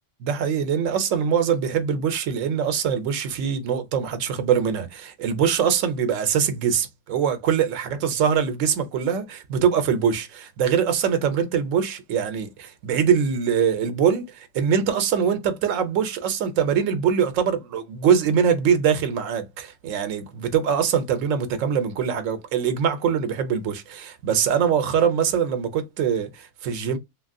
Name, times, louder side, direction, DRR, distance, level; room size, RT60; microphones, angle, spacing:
voice 1, 0.2-27.0, right 7 dB, 85° right, 1.0 m, -23 dB
2.9 x 2.4 x 2.5 m
omnidirectional pair, 1.3 m